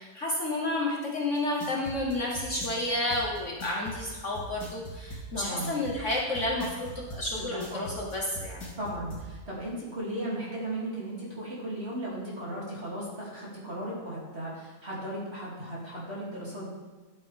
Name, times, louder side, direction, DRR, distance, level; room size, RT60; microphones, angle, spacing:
voice 1, 0.0-8.7, left 1 dB, 45° left, -2 dB, 1.3 m, -31 dB
sound 1, 1.3-9.2, left 1 dB, 70° left, 2.7 m, -40 dB
voice 2, 5.3-5.7 7.4-7.8 8.8-16.8, right 1 dB, 35° right, -6 dB, 3.0 m, -36 dB
11.0 x 8.9 x 3.5 m, 1.2 s
omnidirectional pair, 1.9 m